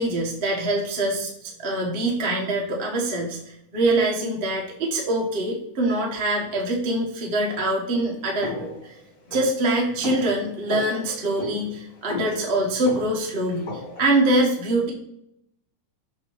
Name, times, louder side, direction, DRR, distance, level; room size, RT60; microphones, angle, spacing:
voice 1, 0.0-3.4 3.7-8.7 9.3-13.6 14.0-14.9, right 1 dB, 85° right, -1 dB, 0.5 m, -24 dB
sound 1, 8.4-14.2, left 2 dB, 55° left, 1.0 m, -36 dB
7.4 x 3.0 x 4.6 m, 0.76 s
omnidirectional pair, 3.5 m